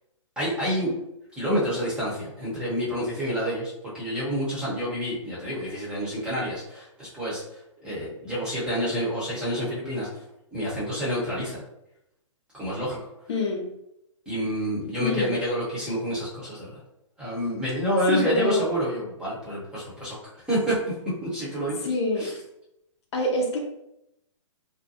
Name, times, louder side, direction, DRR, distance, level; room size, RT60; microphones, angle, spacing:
voice 1, 0.4-0.9 1.4-7.4 7.8-10.1 10.5-11.6 12.5-13.0 14.3-16.8 17.2-20.2 20.5-21.0 21.2-21.9 22.2-22.3, equal, 5° right, -8 dB, 0.9 m, -28 dB
voice 2, 13.3-13.6 15.0-15.3 18.1-18.7 21.8-22.3 23.1-23.6, left 2 dB, 55° left, 1 dB, 0.6 m, -25 dB
2.6 x 2.2 x 2.7 m, 0.84 s
hypercardioid pair, 140°, 17 cm